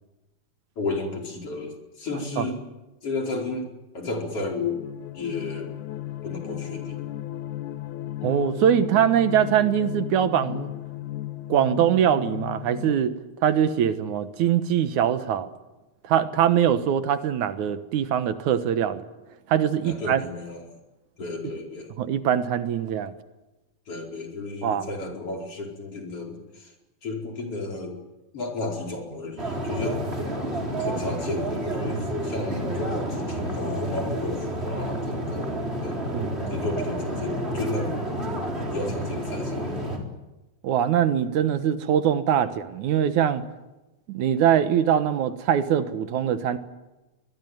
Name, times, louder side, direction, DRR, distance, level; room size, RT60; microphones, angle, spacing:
voice 1, 0.8-2.6 3.0-3.7 3.9-4.8 5.1-5.7 6.2-7.1 19.9-20.7 21.2-21.9 23.9-26.7 27.0-28.0 28.3-30.0 30.8-36.1 36.5-38.0 38.7-40.0, left 3 dB, 50° left, 2 dB, 5.6 m, -33 dB
sound 1, 4.3-12.9, left 14 dB, 80° left, 2.5 m, -35 dB
voice 2, 8.2-10.7 11.5-13.1 13.4-15.5 16.0-19.0 19.5-20.2 21.4-21.5 22.0-23.1 24.6-24.9 36.1-36.3 40.6-43.4 44.1-46.6, right 9 dB, 80° right, 11 dB, 2.7 m, -22 dB
sound 2, 29.4-40.0, right 1 dB, 20° right, 4.1 m, -30 dB
24.0 x 21.0 x 9.4 m, 1.0 s
omnidirectional pair, 3.4 m